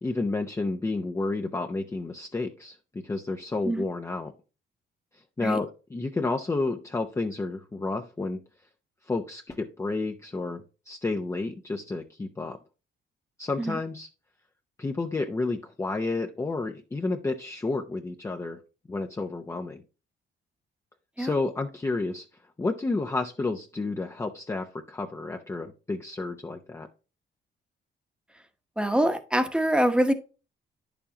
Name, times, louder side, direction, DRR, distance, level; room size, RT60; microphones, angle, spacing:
voice 1, 0.0-2.8 3.0-4.3 5.4-8.4 9.1-12.6 13.4-14.1 14.8-18.6 18.9-19.8 21.2-22.2 22.6-26.9, left 3 dB, 15° left, 0.6 m, -30 dB
voice 2, 28.8-30.1, right 1 dB, 5° right, 1.0 m, -24 dB
10.0 x 7.0 x 2.8 m
cardioid pair, 145°, 19 cm